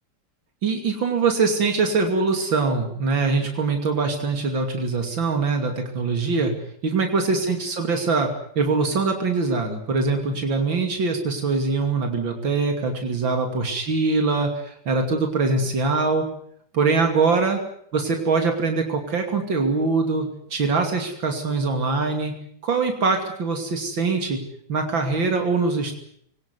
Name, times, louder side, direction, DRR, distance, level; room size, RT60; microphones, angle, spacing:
voice 1, 0.6-6.5 6.8-16.3 16.7-17.6 17.9-22.3 22.6-24.4 24.7-25.9, right 4 dB, 85° right, 4 dB, 3.5 m, -23 dB
24.0 x 18.5 x 9.6 m, 0.67 s
omnidirectional pair, 2.0 m